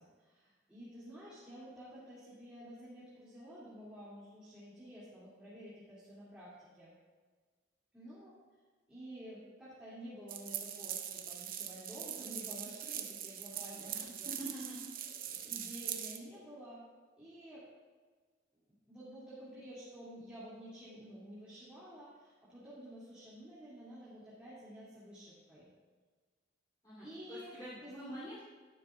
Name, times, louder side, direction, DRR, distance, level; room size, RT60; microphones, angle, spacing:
voice 1, 0.0-6.9 7.9-8.3 8.9-14.3 15.1-16.8 17.2-17.6 18.9-25.7 27.0-28.0, equal, 5° right, -11 dB, 2.3 m, -51 dB
sound 1, 10.3-16.2, right 10 dB, 50° right, 0.7 m, -42 dB
voice 2, 13.5-14.8 26.8-28.4, right 1 dB, 20° left, -11 dB, 2.8 m, -47 dB
12.5 x 11.5 x 2.3 m, 1.5 s
head